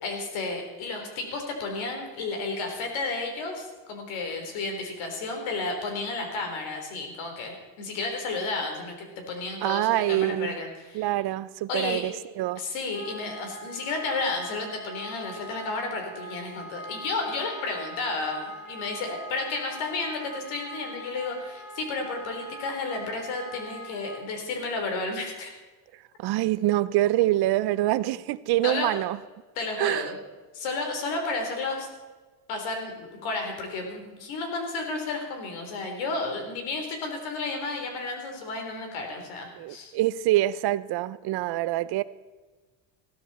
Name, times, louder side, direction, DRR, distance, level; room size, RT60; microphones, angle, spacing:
voice 1, 0.0-11.1 11.7-12.0 12.6-25.5 28.6-29.0 29.6-30.2 30.5-31.9 32.5-39.9, left 3 dB, 75° left, 4.0 m, -32 dB
voice 2, 9.6-10.6 10.9-12.1 12.4-12.6 26.2-29.2 29.8-30.1 39.6-42.0, right 15 dB, 55° right, 0.6 m, -25 dB
Wind instrument woodwind instrument, 12.9-24.2, right 1 dB, 30° left, 5.8 m, -42 dB
16.0 x 13.0 x 4.3 m
cardioid pair, 125°, 48 cm